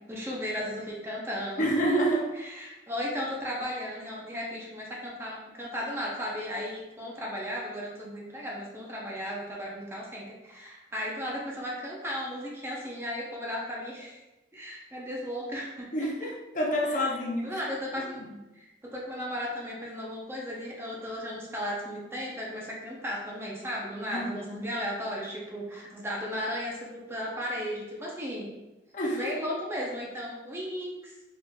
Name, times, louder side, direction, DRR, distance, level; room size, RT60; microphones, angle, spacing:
voice 1, 0.1-1.8 2.3-14.2 14.5-15.9 16.9-17.0 17.4-18.2 18.6-28.5 29.1-31.1, equal, 15° right, -3 dB, 0.6 m, -35 dB
voice 2, 1.6-2.3 15.9-17.5 24.1-24.6 28.9-29.3, equal, 45° left, -2 dB, 0.6 m, -28 dB
3.8 x 3.7 x 2.3 m, 1.0 s
head